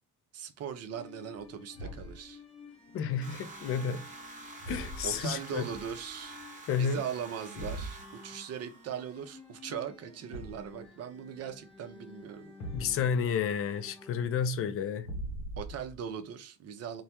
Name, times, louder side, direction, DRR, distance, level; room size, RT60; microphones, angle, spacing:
voice 1, 0.3-2.4 5.0-6.4 6.7-12.5 15.6-17.0, right 8 dB, 40° right, 0.5 m, -40 dB
sound 1, 0.9-14.3, left 3 dB, 15° left, 0.8 m, -53 dB
Thump thud, 1.7-2.3 4.6-5.3 7.6-8.0 10.3-10.8 12.6-13.2 15.0-16.0, right 1 dB, 75° left, 0.8 m, -40 dB
voice 2, 2.9-4.0 4.7-5.6 6.7-7.0 12.7-15.1, left 7 dB, 35° left, 0.4 m, -31 dB
sound 2, 3.2-9.4, right 2 dB, 20° right, 0.9 m, -48 dB
2.2 x 2.1 x 2.8 m
hypercardioid pair, 60°, 42 cm